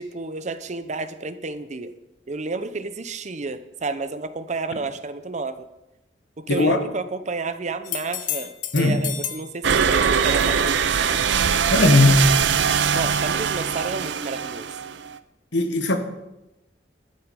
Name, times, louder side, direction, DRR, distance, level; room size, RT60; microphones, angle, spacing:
voice 1, 0.0-1.9 2.3-5.7 6.4-11.2 12.9-14.7, right 3 dB, 40° right, 12 dB, 0.7 m, -31 dB
voice 2, 6.5-6.8 8.7-9.0 11.7-12.3 15.5-16.0, left 2 dB, 85° left, 6 dB, 1.4 m, -18 dB
sound 1, 7.8-9.5 13.2-13.3, left 10 dB, 50° left, 0.7 m, -31 dB
sound 2, 9.6-15.2, right 7 dB, 80° right, 0.6 m, -22 dB
11.5 x 7.9 x 5.3 m, 0.94 s
head